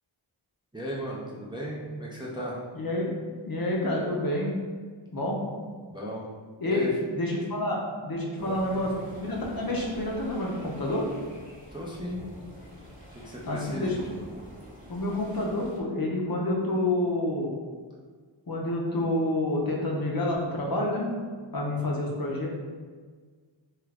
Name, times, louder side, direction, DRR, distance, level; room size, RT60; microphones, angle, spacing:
voice 1, 0.7-2.6 5.9-6.3 6.6-6.9 8.4-8.9 11.7-12.2 13.1-14.0, equal, 10° right, -5 dB, 0.4 m, -36 dB
voice 2, 2.7-3.1 3.4-4.5 5.1-5.4 6.6-8.9 9.2-11.0 13.5-14.2 14.9-17.5 18.5-21.1 21.5-22.5, left 1 dB, 45° left, -2 dB, 0.6 m, -28 dB
sound 1, 8.4-15.8, equal, 15° left, 0.8 m, -46 dB
2.9 x 2.4 x 3.3 m, 1.5 s
wide cardioid pair, 80°, 48 cm